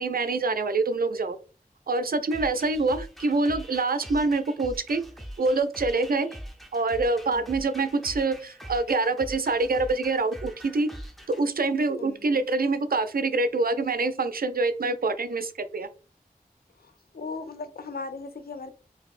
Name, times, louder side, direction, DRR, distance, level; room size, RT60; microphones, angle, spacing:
voice 1, 0.0-1.4 1.9-5.0 5.4-6.3 6.7-10.9 11.3-15.9, right 3 dB, 75° right, 0.4 m, -25 dB
sound 1, 2.3-11.4, equal, ahead, 0.6 m, -42 dB
voice 2, 12.0-12.4 17.1-18.8, left 4 dB, 85° left, 0.4 m, -37 dB
3.9 x 2.6 x 2.4 m
wide cardioid pair, 45°, 15 cm